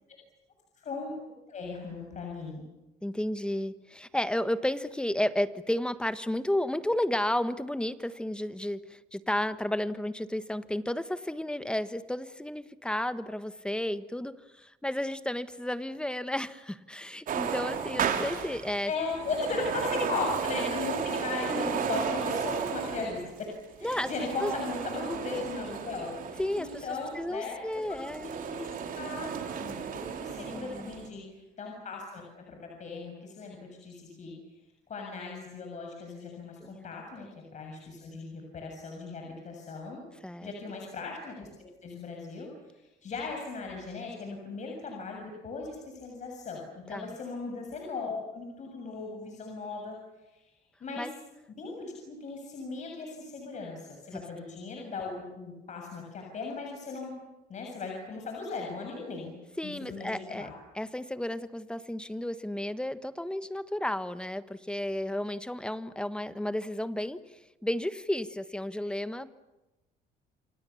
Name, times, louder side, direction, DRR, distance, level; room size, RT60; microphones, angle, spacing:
voice 1, 0.8-1.1 1.5-2.6 18.9-23.5 23.8-29.3 29.6-34.3 34.9-40.0 40.4-42.5 43.0-50.0 50.3-50.4 50.8-51.1 51.6-57.1 57.5-59.3 59.6-60.5, left 4 dB, 45° left, 1 dB, 7.1 m, -37 dB
voice 2, 3.0-18.9 20.1-20.2 21.5-21.9 23.8-24.1 24.4-24.5 25.3-25.5 26.4-26.9 27.1-28.3 30.5-30.9 36.6-36.8 40.2-40.5 46.9-47.2 51.0-51.1 54.1-54.2 59.6-60.5 60.7-67.2 67.6-69.3, left 1 dB, 5° left, 12 dB, 1.4 m, -32 dB
sound 1, 17.3-27.1 27.7-31.1, right 7 dB, 55° right, 4.2 m, -34 dB
29.5 x 26.5 x 7.2 m, 1.0 s
cardioid pair, 110°, 17 cm